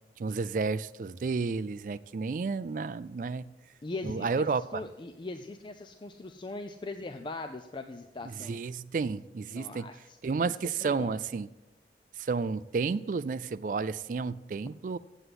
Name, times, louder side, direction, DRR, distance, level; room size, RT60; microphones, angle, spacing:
voice 1, 0.2-3.5 4.0-4.8 8.2-9.9 10.2-11.5 12.2-15.0, right 4 dB, 45° right, 0.3 m, -31 dB
voice 2, 3.8-4.4 4.7-8.6 9.5-10.2 10.5-11.2, left 2 dB, 25° left, 0.4 m, -40 dB
8.0 x 7.8 x 7.8 m
head